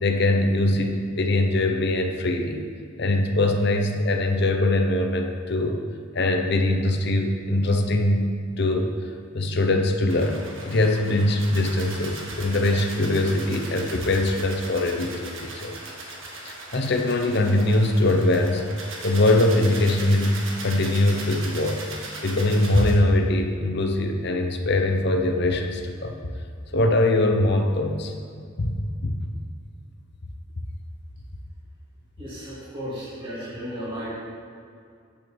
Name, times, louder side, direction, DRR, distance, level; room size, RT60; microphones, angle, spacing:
voice 1, 0.0-2.6 3.0-5.8 6.1-8.3 8.6-8.9 9.3-15.7 16.0-16.2 16.4-18.6 19.0-21.8 22.2-26.1 26.7-28.1 28.6-29.2, left 1 dB, 55° left, 4 dB, 0.9 m, -22 dB
sound 1, 10.1-22.9, right 2 dB, 80° right, 1.6 m, -38 dB
voice 2, 32.2-34.1, equal, 25° right, -10 dB, 2.6 m, -34 dB
8.5 x 6.4 x 6.9 m, 2.3 s
head